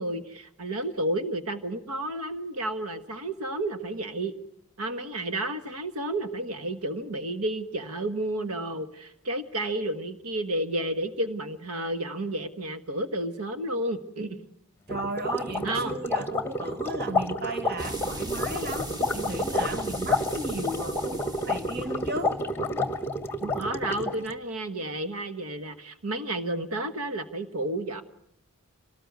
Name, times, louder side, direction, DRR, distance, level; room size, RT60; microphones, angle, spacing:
voice 1, 0.0-4.3 4.8-14.4 15.6-16.0 23.4-28.0, right 1 dB, 80° right, 1.4 m, -31 dB
sound 1, 14.9-24.3, left 1 dB, 10° left, 1.4 m, -30 dB
voice 2, 14.9-22.4, right 1 dB, 45° right, 1.6 m, -35 dB
sound 2, 17.8-24.3, right 1 dB, 20° right, 2.0 m, -40 dB
26.0 x 18.5 x 9.4 m
head